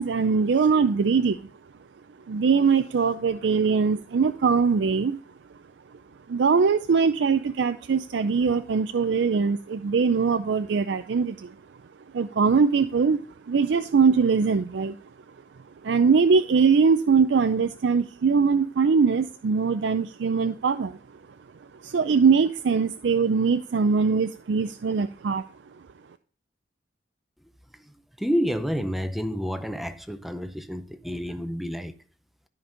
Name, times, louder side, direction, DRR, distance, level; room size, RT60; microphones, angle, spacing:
voice 1, 0.0-1.4 2.3-5.2 6.3-11.5 12.1-13.2 13.5-15.0 15.8-21.0 21.8-25.4, right 5 dB, 90° right, 0.4 m, -22 dB
voice 2, 28.2-31.9, equal, ahead, 0.5 m, -29 dB
13.0 x 5.2 x 3.9 m
head